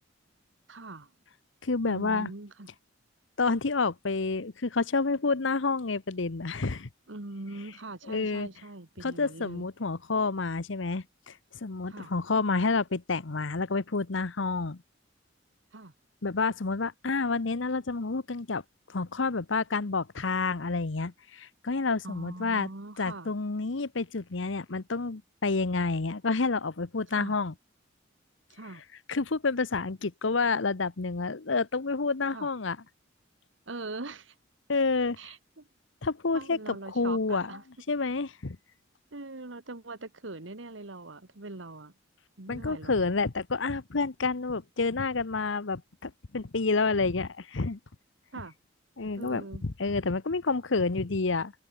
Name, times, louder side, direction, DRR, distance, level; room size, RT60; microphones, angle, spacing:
voice 1, 0.7-1.1 1.9-2.7 7.1-9.7 11.9-12.1 15.7-15.9 22.0-23.3 27.1-27.4 28.5-28.8 32.3-32.5 33.7-34.3 35.2-35.7 36.3-37.6 39.1-41.9 42.4-43.0 48.3-48.6 49.2-49.6, right 2 dB, 70° right, 1.8 m, -42 dB
voice 2, 1.6-2.3 3.4-6.9 8.1-8.5 9.0-11.3 11.6-14.8 16.2-18.6 18.9-22.7 23.0-27.5 29.1-32.8 34.7-35.3 36.0-37.5 37.9-38.6 42.5-47.8 49.0-51.5, left 4 dB, 70° left, 1.0 m, -29 dB
head